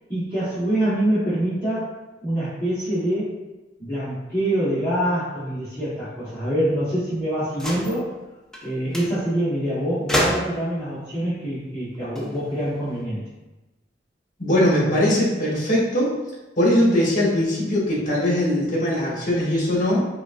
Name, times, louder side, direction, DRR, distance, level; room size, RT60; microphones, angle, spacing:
voice 1, 0.1-1.9 2.2-3.3 3.8-8.1 8.6-13.2, right 1 dB, 20° left, -15 dB, 1.2 m, -25 dB
sound 1, 7.5-8.0 8.5-8.7 8.9-9.1 10.1-10.7 12.0-13.0, equal, 5° left, 0.5 m, -28 dB
voice 2, 14.4-16.1 16.6-20.0, left 1 dB, 45° left, -5 dB, 1.2 m, -20 dB
5.0 x 2.4 x 2.5 m, 1.1 s
head